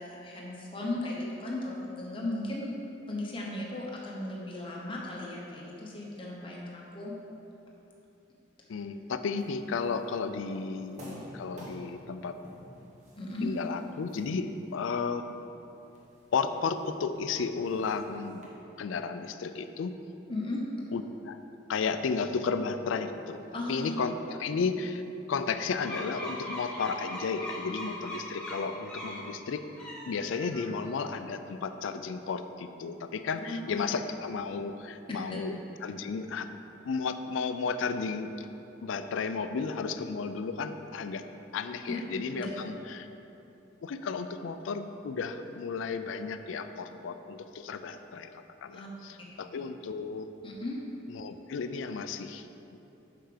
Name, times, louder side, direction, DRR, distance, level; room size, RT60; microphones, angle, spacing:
voice 1, 0.0-2.7 3.1-7.1 13.2-13.5 20.3-20.6 23.5-23.9 33.5-33.9 35.3-35.4 41.9-42.0 42.3-42.5 48.7-48.9 50.4-50.8, left 2 dB, 25° left, -3 dB, 1.0 m, -36 dB
voice 2, 8.7-12.4 13.4-15.2 16.3-18.4 18.8-20.0 20.9-21.4 21.7-25.0 25.3-29.6 30.1-35.6 35.8-36.5 36.8-38.3 38.8-41.2 41.5-43.1 43.8-50.3 51.1-52.8, left 5 dB, 75° left, 9 dB, 0.4 m, -33 dB
sound 1, 9.4-18.4, equal, 35° right, 1.3 m, -52 dB
sound 2, 25.8-29.2 29.7-30.9, left 1 dB, 5° left, 1.6 m, -40 dB
5.8 x 5.6 x 5.0 m, 2.9 s
head